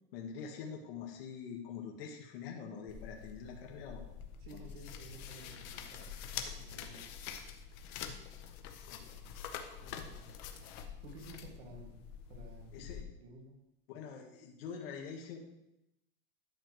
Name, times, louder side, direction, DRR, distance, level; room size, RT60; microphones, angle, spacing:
voice 1, 0.1-4.1 4.5-4.7 8.9-9.2 12.7-13.1 13.9-15.4, left 6 dB, 70° left, 1 dB, 1.6 m, -45 dB
sound 1, 2.9-13.0, left 8 dB, 35° left, 0.7 m, -46 dB
voice 2, 4.4-6.1 6.6-7.1 9.8-10.3 11.0-12.0 12.3-12.9 13.2-13.6, right 2 dB, 80° right, 1 dB, 2.3 m, -53 dB
11.5 x 6.5 x 3.1 m, 0.87 s
supercardioid pair, 180°, 30 cm